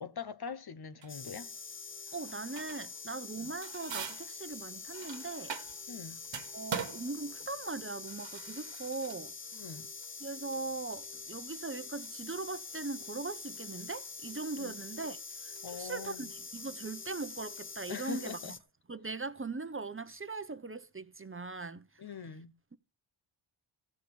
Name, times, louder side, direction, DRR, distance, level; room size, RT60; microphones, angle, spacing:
voice 1, 0.0-1.5 3.4-3.5 5.9-6.2 9.5-9.9 14.6-14.7 15.6-16.3 17.9-18.5 22.0-22.5, left 6 dB, 50° left, 1.1 m, -43 dB
sound 1, 1.0-1.4 2.1-3.0 3.3-6.0 6.2-18.6, right 6 dB, 65° right, 1.6 m, -45 dB
sound 2, 1.1-18.6, left 5 dB, 25° left, 0.7 m, -45 dB
voice 2, 2.1-5.6 6.5-9.3 10.2-18.6 18.9-22.0, right 3 dB, 25° right, 1.0 m, -40 dB
15.0 x 5.1 x 8.1 m
cardioid pair, 70°, 49 cm